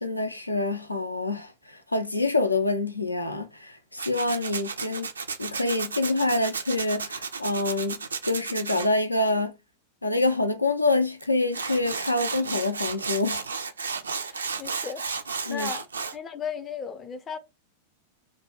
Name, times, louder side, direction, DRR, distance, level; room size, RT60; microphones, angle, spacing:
voice 1, 0.0-5.1 5.4-9.6 10.0-13.4 15.5-15.7, left 2 dB, 85° left, 0.4 m, -26 dB
Tools, 4.0-8.9 11.2-11.3 11.5-16.2, right 5 dB, 75° right, 0.3 m, -33 dB
voice 2, 14.2-15.1 15.5-15.9 16.1-17.4, left 7 dB, 25° left, 0.4 m, -36 dB
2.6 x 2.1 x 3.1 m
figure-of-eight pair, 90°, 0 cm